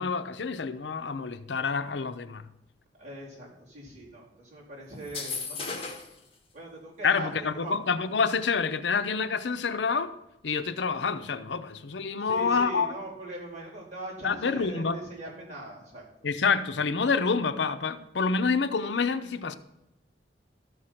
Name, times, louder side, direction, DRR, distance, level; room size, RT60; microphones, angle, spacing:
voice 1, 0.0-2.4 7.0-10.1 10.4-12.9 14.2-15.0 16.2-19.6, left 5 dB, 75° left, 0.6 m, -27 dB
voice 2, 3.0-5.7 6.5-7.8 12.2-16.3, right 2 dB, 40° right, 3.9 m, -41 dB
sound 1, 5.0-6.2, left 4 dB, 35° left, 1.6 m, -35 dB
13.0 x 6.5 x 5.8 m
head